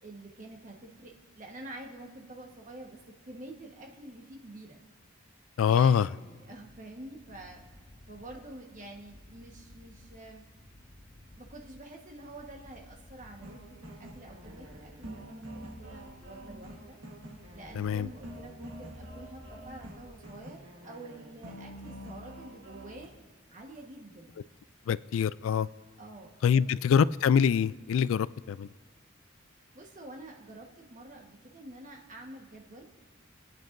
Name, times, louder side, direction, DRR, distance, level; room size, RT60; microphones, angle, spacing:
voice 1, 0.0-4.8 5.6-7.6 8.1-10.5 11.3-17.0 17.5-23.1 23.5-24.3 26.0-26.7 29.7-32.9, right 2 dB, 40° right, 1 dB, 1.3 m, -48 dB
voice 2, 5.6-6.1 17.7-18.1 24.9-25.7 26.4-28.7, left 7 dB, 85° left, 18 dB, 0.3 m, -25 dB
sound 1, 6.4-20.7, left 1 dB, 15° left, 4.6 m, -55 dB
sound 2, 13.4-23.1, equal, 80° right, 1.4 m, -47 dB
27.0 x 9.1 x 2.6 m, 1.3 s
head